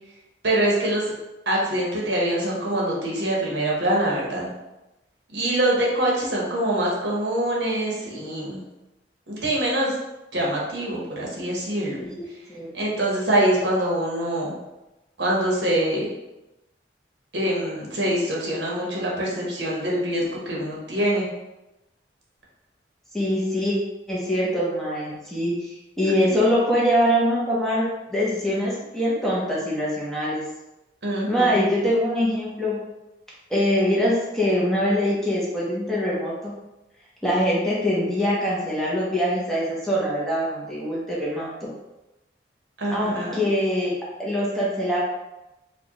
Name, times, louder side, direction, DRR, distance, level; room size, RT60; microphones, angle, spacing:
voice 1, 0.4-1.0 1.5-4.5 5.3-8.6 9.3-9.9 10.3-12.0 12.7-14.5 15.2-16.1 17.3-21.3 26.3-26.4 31.0-31.7 42.8-43.4, right 1 dB, 75° right, -4 dB, 1.0 m, -24 dB
voice 2, 23.1-23.8 24.1-30.4 31.3-32.8 33.5-36.5 37.2-41.7 42.9-43.9 44.2-45.0, equal, ahead, -7 dB, 0.8 m, -23 dB
4.4 x 2.3 x 3.0 m, 0.98 s
head